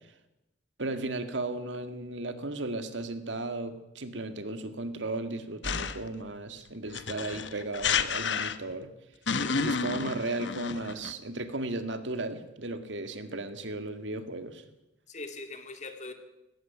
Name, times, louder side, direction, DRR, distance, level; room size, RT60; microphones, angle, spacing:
voice 1, 0.8-8.9 9.6-14.6, right 2 dB, 80° right, 9 dB, 2.0 m, -35 dB
sound 1, 5.6-6.1 6.9-8.8 9.3-11.1, left 5 dB, 70° left, 1.1 m, -30 dB
voice 2, 15.1-16.1, left 2 dB, 40° left, 7 dB, 2.5 m, -41 dB
18.0 x 15.5 x 9.5 m, 0.93 s
head